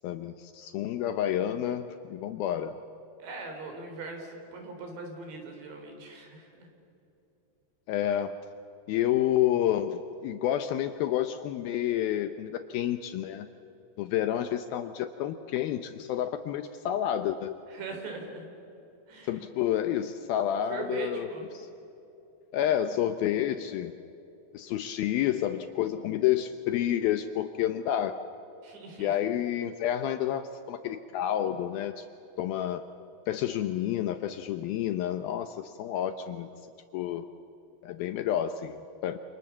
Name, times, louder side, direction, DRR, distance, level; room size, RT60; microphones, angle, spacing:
voice 1, 0.0-2.7 7.9-8.4 8.9-13.5 14.0-17.6 19.2-21.3 21.5-21.7 22.5-23.9 24.5-28.2 29.0-32.0 32.4-32.8 33.3-36.5 36.9-37.2 37.8-39.2, left 11 dB, 80° left, 9 dB, 2.1 m, -29 dB
voice 2, 3.2-6.7 17.7-18.5 19.1-19.4 20.7-21.5 28.6-29.1, right 4 dB, 70° right, 4 dB, 6.0 m, -40 dB
28.0 x 27.5 x 7.3 m, 2.9 s
omnidirectional pair, 5.3 m